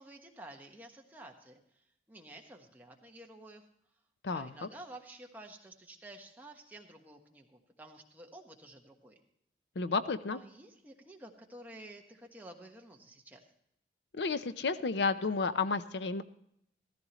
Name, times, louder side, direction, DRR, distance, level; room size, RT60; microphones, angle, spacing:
voice 1, 0.0-1.8 2.1-3.6 4.3-9.1 10.3-13.5, right 1 dB, 10° right, 1 dB, 1.4 m, -51 dB
voice 2, 4.2-4.7 9.8-10.4 14.1-16.2, left 4 dB, 80° left, 12 dB, 0.6 m, -32 dB
14.5 x 14.0 x 3.0 m, 0.73 s
head